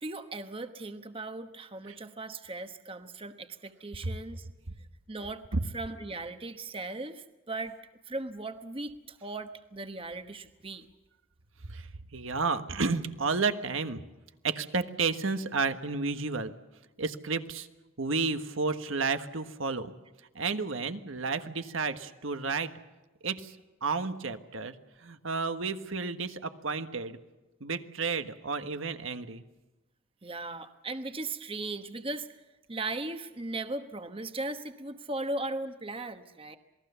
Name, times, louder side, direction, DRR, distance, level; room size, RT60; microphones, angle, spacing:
voice 1, 0.0-4.5 5.1-5.4 5.7-7.7 8.1-10.8 30.2-32.3 32.7-36.6, right 2 dB, 25° right, 8 dB, 1.1 m, -38 dB
voice 2, 11.6-14.0 14.4-16.5 17.0-17.7 18.0-19.9 20.3-22.7 23.2-23.6 23.8-24.7 25.0-27.2 27.6-29.4, right 4 dB, 80° right, 8 dB, 1.4 m, -31 dB
27.5 x 20.0 x 7.0 m, 1.1 s
head